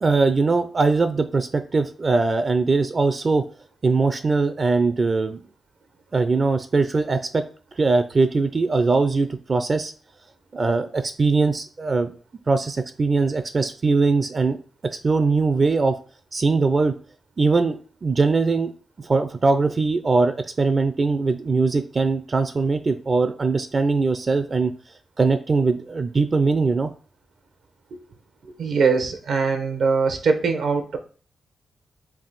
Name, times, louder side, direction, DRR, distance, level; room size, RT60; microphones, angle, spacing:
voice 1, 0.0-3.4 3.8-5.4 6.1-7.4 7.7-9.9 10.5-12.1 12.5-14.6 14.8-16.0 16.3-16.9 17.4-18.7 19.0-24.7 25.2-26.9, right 3 dB, 40° right, 9 dB, 0.4 m, -21 dB
voice 2, 28.4-31.0, right 5 dB, 80° right, 5 dB, 0.6 m, -22 dB
3.5 x 2.5 x 4.0 m, 0.40 s
cardioid pair, 70°, 0 cm